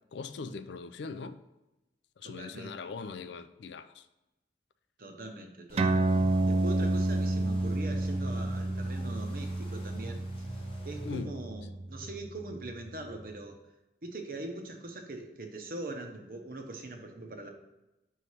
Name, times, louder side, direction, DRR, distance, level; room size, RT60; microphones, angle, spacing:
voice 1, 0.1-1.4 2.2-4.1 11.0-11.3 12.0-12.1, left 4 dB, 80° left, 0.4 m, -40 dB
voice 2, 2.2-2.8 5.0-6.1 6.5-10.3 10.8-13.6 14.0-17.5, right 2 dB, 50° right, 0.7 m, -42 dB
sound 1, 5.7-11.2, equal, 30° left, 0.8 m, -46 dB
sound 2, 5.8-12.7, right 2 dB, 35° right, 0.3 m, -30 dB
5.5 x 3.2 x 5.5 m
head